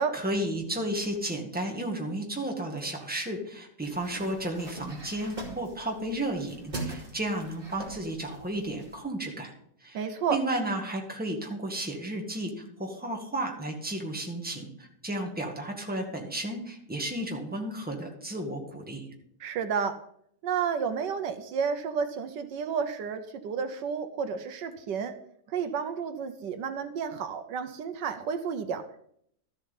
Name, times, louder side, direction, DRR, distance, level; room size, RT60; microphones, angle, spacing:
voice 1, 0.0-9.5 9.8-10.0 10.3-19.1, right 1 dB, 5° right, 1 dB, 1.7 m, -33 dB
sound 1, 3.8-9.0, right 2 dB, 30° right, 2.8 m, -42 dB
voice 2, 9.9-10.4 19.4-20.0 20.4-25.1 25.5-28.8, right 6 dB, 75° right, 9 dB, 1.4 m, -31 dB
13.0 x 7.6 x 5.5 m, 0.69 s
omnidirectional pair, 2.0 m